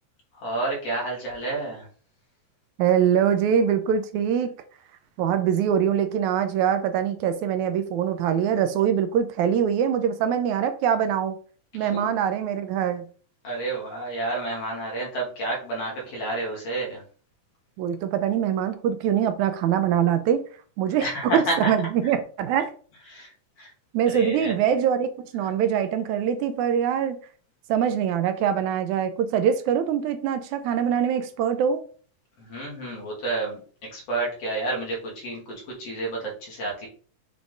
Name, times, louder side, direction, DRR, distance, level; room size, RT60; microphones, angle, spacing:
voice 1, 0.4-1.9 11.8-12.1 13.4-17.0 21.0-21.7 23.1-23.3 23.6-23.7 24.1-24.5 32.4-33.6 33.9-36.9, right 2 dB, 55° left, -2 dB, 3.2 m, -30 dB
voice 2, 2.8-4.5 5.2-11.4 11.7-13.1 17.8-20.4 20.8-22.7 23.9-27.2 27.7-31.8, right 8 dB, 80° right, 9 dB, 1.9 m, -23 dB
7.0 x 3.7 x 3.8 m, 0.42 s
omnidirectional pair, 3.5 m